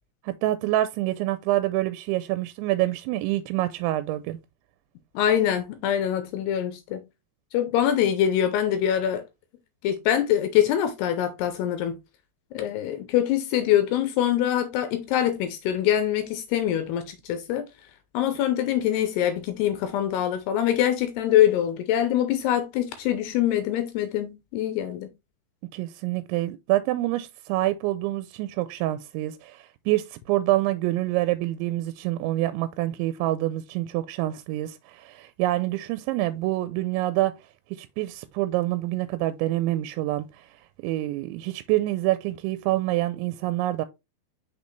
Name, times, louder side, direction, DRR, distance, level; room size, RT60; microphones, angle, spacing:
voice 1, 0.2-4.4 25.7-37.3 37.7-40.6 40.8-43.9, right 16 dB, 90° right, 2.9 m, -26 dB
voice 2, 5.2-7.0 7.5-9.2 9.8-11.9 12.5-17.7 18.1-25.1, left 11 dB, 80° left, 2.5 m, -24 dB
6.2 x 5.3 x 3.1 m
omnidirectional pair, 5.2 m